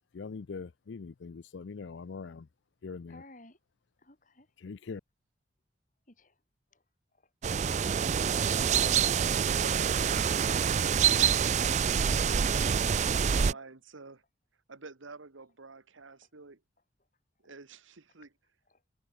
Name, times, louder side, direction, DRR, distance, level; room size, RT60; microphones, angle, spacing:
voice 1, 0.1-2.5 2.8-3.2 4.6-5.0, left 4 dB, 65° left, 0.5 m, -42 dB
voice 2, 3.1-3.6 4.0-4.5 6.1-6.3, left 1 dB, 40° left, 4.1 m, -55 dB
sound 1, 7.4-13.5, right 7 dB, 35° right, 0.4 m, -26 dB
voice 3, 9.3-11.3 13.1-14.2 14.7-16.6 17.4-18.3, right 3 dB, 85° right, 1.4 m, -49 dB
head